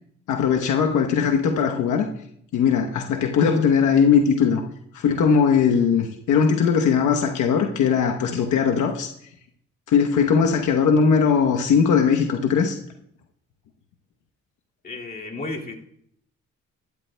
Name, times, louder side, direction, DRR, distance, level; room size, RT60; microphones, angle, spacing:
voice 1, 0.3-2.1 2.5-4.6 5.0-9.1 9.9-12.8, left 6 dB, 80° left, 3 dB, 1.0 m, -19 dB
voice 2, 14.8-15.7, left 2 dB, 30° left, -1 dB, 2.2 m, -33 dB
13.0 x 12.5 x 2.2 m, 0.69 s
cardioid pair, 90°, 30 cm